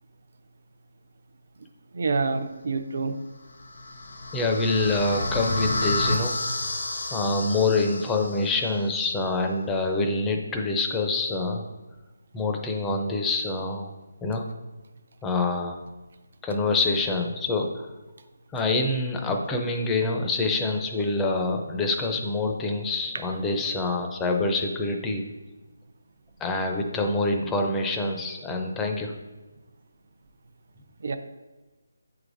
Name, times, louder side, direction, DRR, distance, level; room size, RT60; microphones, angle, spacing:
voice 1, 1.9-3.1 31.0-31.2, right 4 dB, 55° right, 8 dB, 0.5 m, -27 dB
sound 1, 3.5-8.6, left 2 dB, 75° left, 0.9 m, -30 dB
voice 2, 4.3-6.4 7.1-11.6 12.3-13.9 14.2-14.4 15.2-15.8 16.4-17.9 18.5-25.3 26.4-29.1, left 2 dB, 10° left, 3 dB, 0.5 m, -26 dB
8.1 x 4.8 x 2.6 m, 1.1 s
hypercardioid pair, 165°, 0 cm